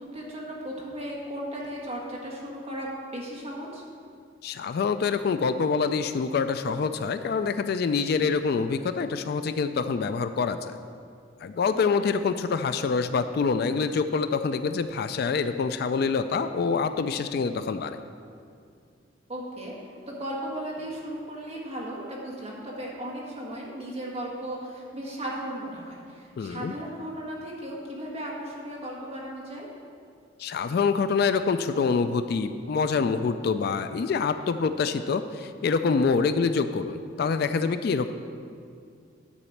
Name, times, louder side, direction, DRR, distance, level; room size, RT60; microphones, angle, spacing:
voice 1, 0.0-3.8 19.3-19.8 20.1-29.7, right 1 dB, 30° right, -3 dB, 1.6 m, -36 dB
voice 2, 4.4-10.8 11.4-18.0 26.4-26.7 30.4-38.1, left 5 dB, 55° left, 10 dB, 0.3 m, -26 dB
9.9 x 4.2 x 7.2 m, 2.3 s
head